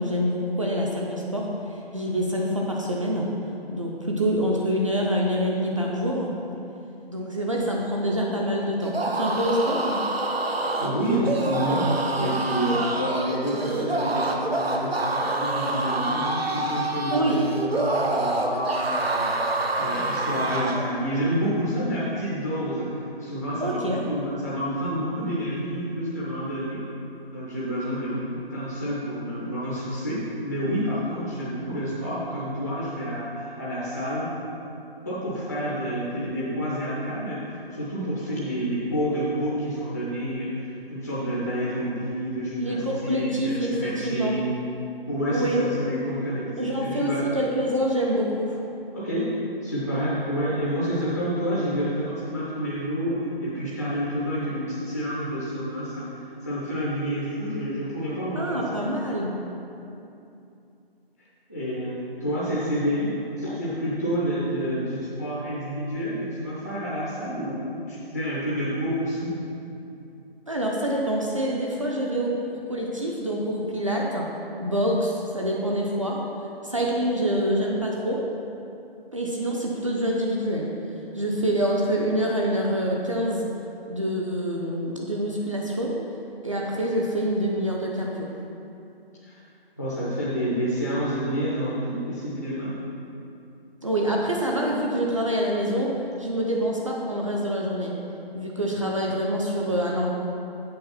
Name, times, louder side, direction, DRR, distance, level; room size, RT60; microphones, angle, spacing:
voice 1, 0.0-3.3 3.7-6.3 7.1-10.0 17.1-17.5 23.6-24.0 42.6-44.4 45.3-45.6 46.6-48.6 58.3-59.4 70.5-74.3 74.6-76.2 76.6-78.2 79.1-80.7 81.1-83.4 83.9-85.9 86.4-88.3 93.8-95.9 96.2-97.9 98.3-100.1, equal, 35° right, -3 dB, 0.6 m, -26 dB
sound 1, 8.8-20.9, right 2 dB, 75° right, 0.8 m, -27 dB
voice 2, 10.5-19.3 19.8-26.8 27.3-34.3 35.0-44.5 45.1-47.3 48.9-49.3 49.6-58.6 61.5-69.3 89.2-89.4 89.8-92.7, equal, 15° left, -8 dB, 0.5 m, -29 dB
7.6 x 4.5 x 5.6 m, 2.7 s
figure-of-eight pair, 155°, 30 cm